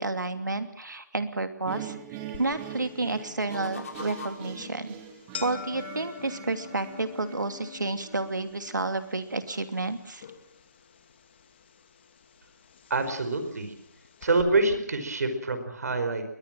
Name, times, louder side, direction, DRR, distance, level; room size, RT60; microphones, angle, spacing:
voice 1, 0.0-2.0 2.4-4.9 5.4-10.2, right 2 dB, 85° right, 9 dB, 2.9 m, -30 dB
sound 1, 1.7-8.8, right 9 dB, 15° right, 1.9 m, -43 dB
sound 2, 2.3-14.4, left 8 dB, 35° left, 2.2 m, -48 dB
sound 3, 3.2-4.6 6.0-8.9, left 5 dB, 50° left, 5.1 m, -46 dB
voice 2, 12.9-13.7 14.2-16.2, right 3 dB, 60° right, 9 dB, 5.0 m, -26 dB
22.0 x 20.5 x 7.7 m, 0.75 s
figure-of-eight pair, 160°, 10 cm